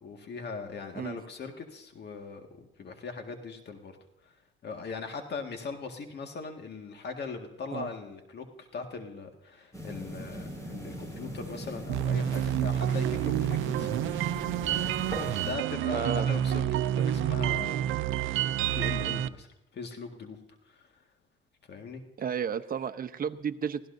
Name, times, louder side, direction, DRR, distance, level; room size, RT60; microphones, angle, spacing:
voice 1, 0.0-4.0 4.2-4.3 4.6-13.9 14.6-18.0 18.6-20.4 20.7-21.0 21.7-22.0, left 4 dB, 55° left, 4 dB, 1.9 m, -40 dB
sound 1, 9.7-15.5, equal, 15° left, 5.1 m, -39 dB
sound 2, 11.9-19.3, right 11 dB, 85° right, 0.5 m, -28 dB
voice 2, 15.9-16.3 22.2-23.8, right 7 dB, 45° right, 10 dB, 0.9 m, -32 dB
25.0 x 15.5 x 2.7 m, 0.94 s
cardioid pair, 90°, 20 cm